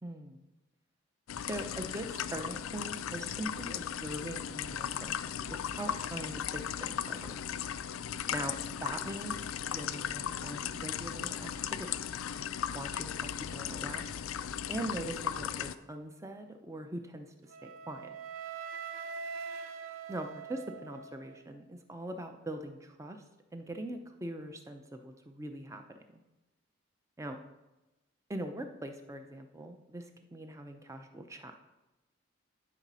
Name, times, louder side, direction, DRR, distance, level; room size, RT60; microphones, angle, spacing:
voice 1, 0.0-0.4 1.5-7.4 8.3-12.0 12.7-14.1 14.7-18.1 20.1-23.2 23.5-25.8 26.1-26.2 27.2-27.4 28.3-31.6, right 1 dB, 15° right, 6 dB, 0.6 m, -42 dB
sound 1, 1.3-15.7, left 9 dB, 85° left, 0.4 m, -37 dB
Wind instrument woodwind instrument, 17.5-21.5, right 6 dB, 70° right, 0.5 m, -43 dB
11.0 x 4.1 x 5.5 m, 1.0 s
head